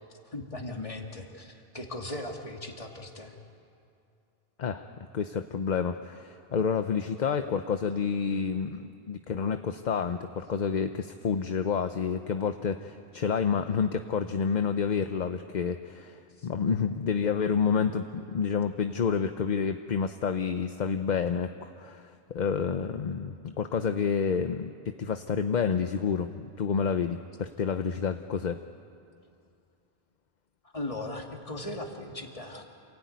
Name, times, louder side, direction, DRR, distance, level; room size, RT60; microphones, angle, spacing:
voice 1, 0.3-3.4 16.4-16.5 30.7-32.7, left 2 dB, 35° left, 2 dB, 2.3 m, -38 dB
voice 2, 5.1-28.6, left 6 dB, 50° left, 8 dB, 0.8 m, -29 dB
27.5 x 17.0 x 9.4 m, 2.5 s
omnidirectional pair, 1.1 m